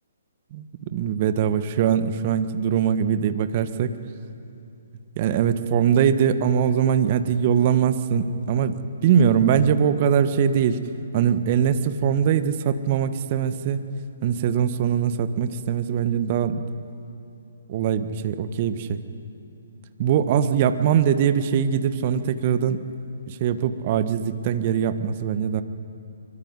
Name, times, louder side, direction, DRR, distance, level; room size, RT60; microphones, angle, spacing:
voice 1, 0.5-3.9 5.2-10.8 11.1-13.8 14.2-16.6 17.7-19.0 20.0-22.8 23.3-25.6, right 8 dB, 35° right, 10 dB, 1.4 m, -22 dB
25.0 x 23.5 x 9.7 m, 2.7 s
figure-of-eight pair, 130°, 0 cm